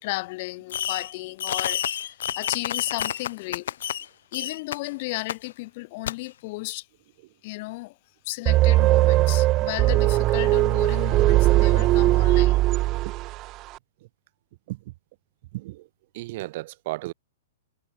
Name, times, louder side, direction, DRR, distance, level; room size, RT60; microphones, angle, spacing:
voice 1, 0.0-3.7 4.3-6.9 7.4-7.9 8.2-12.7, left 23 dB, 35° left, 3.1 m, -34 dB
Fireworks, 0.7-1.1 1.4-4.0 4.3-4.8 5.3-5.4 6.0-6.1, left 10 dB, 65° left, 0.5 m, -29 dB
sound 1, 8.5-13.5, right 18 dB, 25° right, 0.4 m, -19 dB
voice 2, 15.5-15.9 16.1-17.1, right 19 dB, 40° right, 3.1 m, -34 dB
hypercardioid pair, 170°, 0 cm